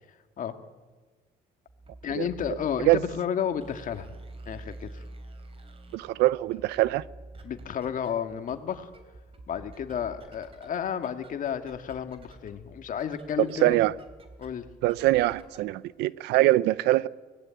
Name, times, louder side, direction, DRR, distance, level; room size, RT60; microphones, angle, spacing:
sound 1, 1.7-15.7, right 2 dB, 35° right, 3.4 m, -48 dB
voice 1, 2.0-4.1 4.5-5.0 7.4-8.9 9.5-13.8 14.4-14.7, left 8 dB, 50° left, 2.0 m, -32 dB
voice 2, 5.9-7.0 13.4-13.9 14.8-17.1, right 17 dB, 85° right, 0.7 m, -23 dB
24.5 x 19.0 x 9.2 m
cardioid pair, 110°, 17 cm